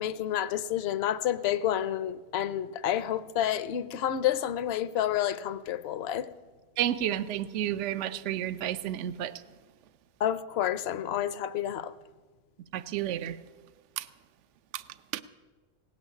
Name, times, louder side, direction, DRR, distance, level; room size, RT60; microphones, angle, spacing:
voice 1, 0.0-6.3 10.2-11.9, left 11 dB, 65° left, 0.8 m, -29 dB
voice 2, 6.8-9.3 12.7-13.4 14.0-14.1 14.7-14.8 15.1-15.2, right 11 dB, 75° right, 0.9 m, -31 dB
17.5 x 6.4 x 9.8 m
omnidirectional pair, 1.3 m